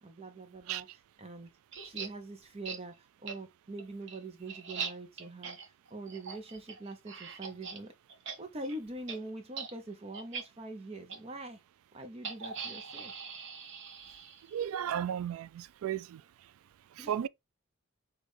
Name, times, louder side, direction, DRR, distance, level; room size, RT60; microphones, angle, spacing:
voice 1, 0.0-1.5 1.8-7.9 8.4-11.6 11.9-13.1 17.0-17.1, right 2 dB, 30° right, 0.6 m, -44 dB
sound 1, 1.7-2.1 2.6-2.8 3.3-3.4 3.8-7.8 8.1-8.4 8.6-8.8 9.1-9.2 9.5-9.7 10.1-10.4 11.1-11.2 12.2-14.6, right 6 dB, 60° right, 0.9 m, -41 dB
voice 2, 14.5-16.2 17.0-17.3, right 9 dB, 80° right, 0.3 m, -34 dB
6.1 x 2.4 x 3.2 m
head